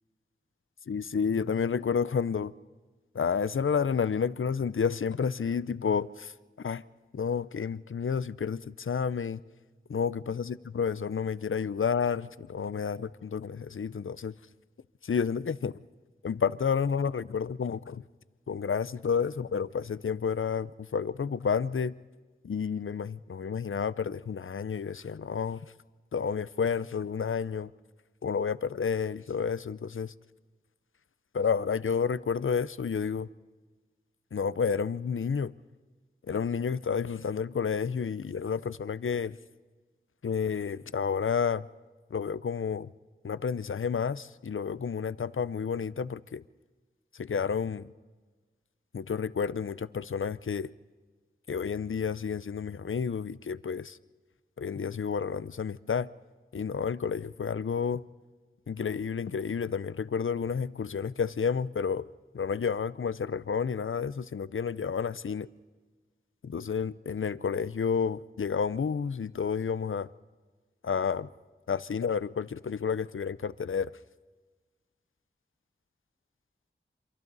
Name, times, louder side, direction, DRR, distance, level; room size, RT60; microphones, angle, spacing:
voice 1, 0.9-2.5 3.1-6.3 6.6-6.8 7.1-9.4 9.9-14.3 15.0-15.8 16.2-18.0 18.5-21.9 22.4-25.7 26.1-27.7 28.2-30.1 31.3-33.3 34.3-35.5 36.3-39.4 40.2-41.7 42.1-42.9 43.2-46.4 47.1-47.9 48.9-50.7 51.5-54.0 54.6-56.1 56.5-58.0 58.7-62.1 62.3-65.5 66.4-70.1 70.8-71.3 71.7-73.9, left 6 dB, 85° left, 0.6 m, -30 dB
28.0 x 26.5 x 4.1 m
wide cardioid pair, 55°, 20 cm